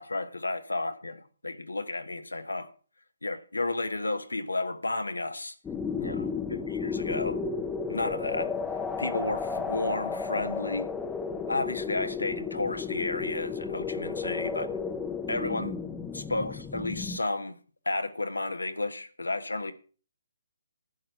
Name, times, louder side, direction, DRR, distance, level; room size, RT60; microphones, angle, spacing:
voice 1, 0.0-2.7 3.2-5.5 6.0-7.4 7.9-8.5 9.0-10.9 11.5-14.7 15.3-15.8 16.1-17.6 17.8-19.7, left 2 dB, 85° left, 1.3 m, -32 dB
sound 1, 5.6-17.2, left 5 dB, 10° left, 0.7 m, -33 dB
11.5 x 8.9 x 4.6 m
figure-of-eight pair, 140°, 0 cm